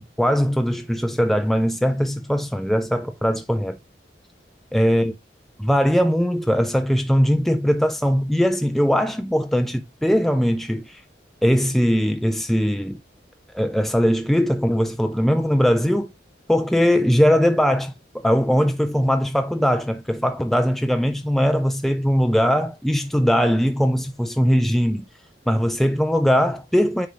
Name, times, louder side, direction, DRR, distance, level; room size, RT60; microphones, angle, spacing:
voice 1, 0.0-3.8 4.7-5.1 5.6-11.0 11.4-13.0 13.5-16.1 16.5-25.0 25.5-27.1, equal, ahead, 0.3 m, -20 dB
9.2 x 3.4 x 3.2 m
head